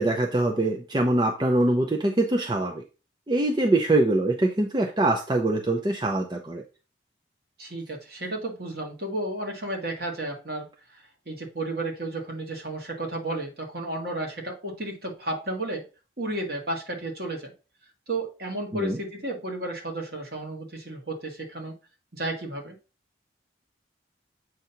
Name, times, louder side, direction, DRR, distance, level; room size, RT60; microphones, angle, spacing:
voice 1, 0.0-2.8 3.3-6.6 18.7-19.0, right 2 dB, 25° right, 2 dB, 0.5 m, -23 dB
voice 2, 7.6-15.9 16.2-17.5 18.1-21.7 22.1-22.8, right 2 dB, 55° right, 0 dB, 1.8 m, -33 dB
7.8 x 2.7 x 5.7 m, 0.33 s
head